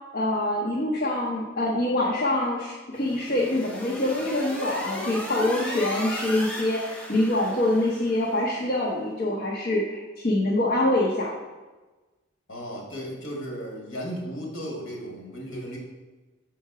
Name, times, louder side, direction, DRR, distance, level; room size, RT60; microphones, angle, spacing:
voice 1, 0.1-11.3, left 1 dB, 50° left, -5 dB, 1.0 m, -25 dB
sound 1, 2.9-8.5, equal, 5° left, 0.8 m, -36 dB
voice 2, 12.5-15.8, equal, 65° left, -1 dB, 2.0 m, -35 dB
6.6 x 4.5 x 4.8 m, 1.2 s
head